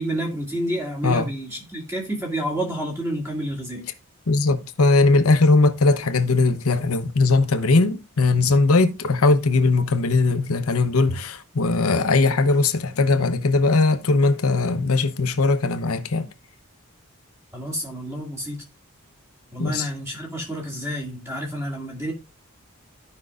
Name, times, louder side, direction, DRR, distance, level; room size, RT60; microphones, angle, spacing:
voice 1, 0.0-3.9 17.5-18.6 19.5-22.1, right 1 dB, 10° right, 2.2 m, -29 dB
voice 2, 4.3-16.3 19.6-19.9, left 3 dB, 80° left, 0.8 m, -19 dB
14.5 x 5.4 x 2.4 m
head